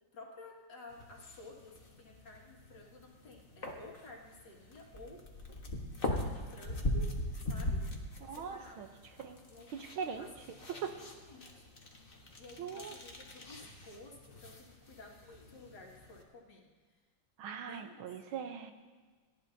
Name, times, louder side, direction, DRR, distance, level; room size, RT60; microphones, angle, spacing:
voice 1, 0.1-5.3 6.0-7.9 8.3-8.8 9.5-9.7 10.1-10.5 10.9-11.7 12.4-17.0 17.6-18.0, left 2 dB, 60° left, -2 dB, 2.8 m, -53 dB
sound 1, 0.9-16.2, left 1 dB, 30° left, 1.4 m, -41 dB
voice 2, 8.3-8.9 9.2-9.4 9.7-10.3 10.7-10.9 12.6-13.0 17.4-18.7, right 7 dB, 85° right, 7 dB, 1.8 m, -40 dB
29.5 x 11.0 x 2.8 m, 1.5 s
omnidirectional pair, 2.2 m